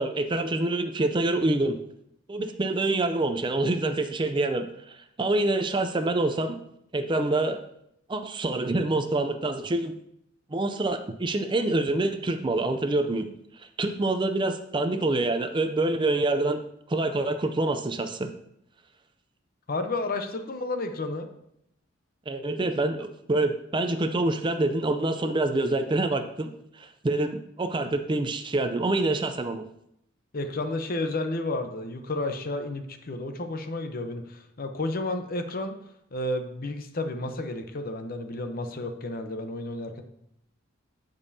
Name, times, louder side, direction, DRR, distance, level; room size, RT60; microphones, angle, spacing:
voice 1, 0.0-1.8 2.3-6.6 6.9-7.6 8.1-9.9 10.5-13.3 13.6-16.6 16.9-18.3 22.3-29.6, right 2 dB, 25° right, 8 dB, 0.4 m, -26 dB
voice 2, 19.7-21.3 30.3-35.7 36.1-40.0, left 2 dB, 45° left, 7 dB, 0.7 m, -31 dB
15.5 x 5.3 x 2.7 m, 0.76 s
head